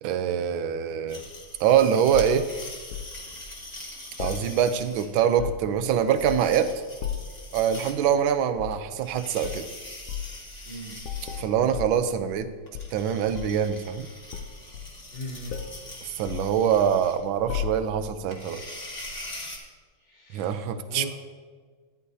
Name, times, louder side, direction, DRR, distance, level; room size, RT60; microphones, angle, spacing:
voice 1, 0.0-1.2 1.6-2.5 4.2-6.7 7.5-9.6 11.4-12.5 12.9-14.1 16.2-18.6 20.3-21.0, right 8 dB, 75° right, 11 dB, 1.4 m, -24 dB
sound 1, 1.1-19.6, left 1 dB, 25° left, 1.2 m, -43 dB
sound 2, 2.1-3.1 4.2-4.9 5.2-5.8 6.2-6.6 7.0-7.4 8.5-8.8 9.4-9.7 10.1-10.3 11.0-12.5 12.7-13.7 14.3-15.2 15.5-15.8 16.3-17.1 17.5-18.1 19.0-19.2, left 9 dB, 80° left, 0.7 m, -35 dB
voice 2, 10.6-11.0 15.1-15.5 20.0-21.1, left 1 dB, 55° left, -10 dB, 3.4 m, -39 dB
13.0 x 9.7 x 2.7 m, 1.5 s
omnidirectional pair, 2.3 m